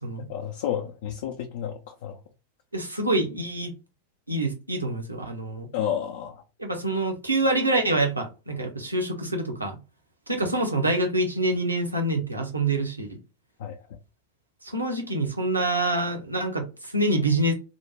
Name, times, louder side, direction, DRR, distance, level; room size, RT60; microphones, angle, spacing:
voice 1, 0.3-2.1 5.7-6.3 13.6-13.8, left 9 dB, 55° left, 0.3 m, -30 dB
voice 2, 2.7-3.7 4.3-5.7 6.6-9.8 10.3-13.2 14.6-17.5, right 2 dB, 85° right, 0.7 m, -26 dB
2.5 x 2.0 x 2.9 m
figure-of-eight pair, 90°, 0 cm